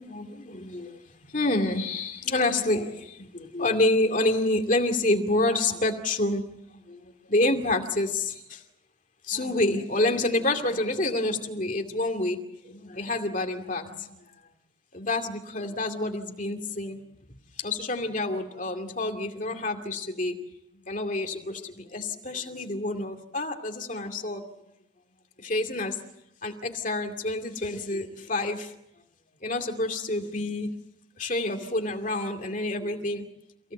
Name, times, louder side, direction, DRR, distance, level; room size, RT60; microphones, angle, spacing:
voice 1, 0.0-8.6 9.2-14.3 14.9-17.0 17.6-20.4 20.7-24.4 25.4-26.0 26.4-28.7 29.4-30.7 31.2-33.2, left 2 dB, 40° left, 5 dB, 2.4 m, -28 dB
28.5 x 17.0 x 7.9 m, 0.83 s
head